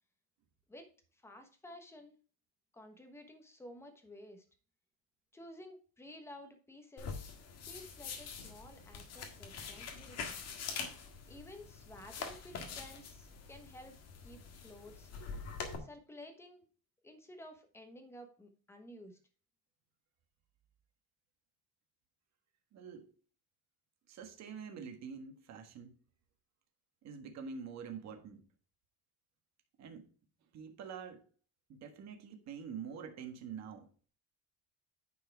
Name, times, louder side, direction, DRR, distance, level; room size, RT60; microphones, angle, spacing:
voice 1, 0.7-2.2 2.7-4.4 5.3-7.3 7.6-10.4 11.3-14.0 14.2-15.1 15.8-16.7 17.0-19.2, left 1 dB, 5° left, 1.1 m, -53 dB
sound 1, 7.0-15.8, left 5 dB, 45° left, 1.7 m, -45 dB
voice 2, 22.7-23.1 24.1-26.0 27.0-28.4 29.8-30.1 30.5-31.2 31.7-33.9, right 6 dB, 45° right, 1.6 m, -46 dB
9.9 x 4.7 x 4.6 m
cardioid pair, 170°, 37 cm